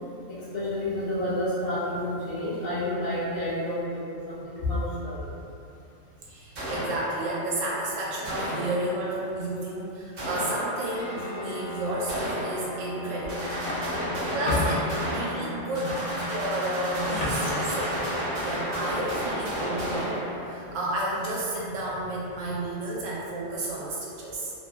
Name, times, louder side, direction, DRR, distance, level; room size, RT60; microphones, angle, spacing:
voice 1, 0.3-4.0 4.3-5.2 15.9-16.0 17.2-17.3, left 1 dB, 65° left, -9 dB, 0.6 m, -29 dB
voice 2, 6.3-13.7 14.1-14.8 15.1-16.0 16.3-20.2 20.5-24.5, right 1 dB, 80° right, -5 dB, 0.9 m, -32 dB
sound 1, 6.5-7.5 8.2-9.2 10.2-11.1 12.1-13.0 13.3-20.8, equal, 55° right, 0.8 m, -32 dB
sound 2, 10.9-22.7, left 2 dB, 10° left, 0.4 m, -41 dB
2.6 x 2.2 x 2.2 m, 2.7 s
omnidirectional pair, 1.3 m